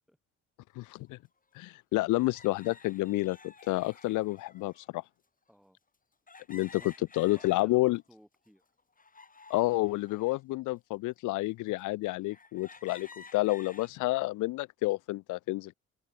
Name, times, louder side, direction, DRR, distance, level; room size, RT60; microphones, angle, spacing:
voice 1, 0.8-1.2 1.6-5.0 6.5-6.8 7.2-8.0 9.5-15.7, left 20 dB, 85° left, 0.5 m, -30 dB
sound 1, 1.0-1.1 2.1-4.9 6.3-8.0 8.5-10.4 11.0-11.1 11.8-11.9 12.3-13.9, left 4 dB, 25° left, 5.7 m, -53 dB
voice 2, 5.5-5.8 6.6-8.6, equal, ahead, 6.1 m, -59 dB
open air
cardioid pair, 90°, 30 cm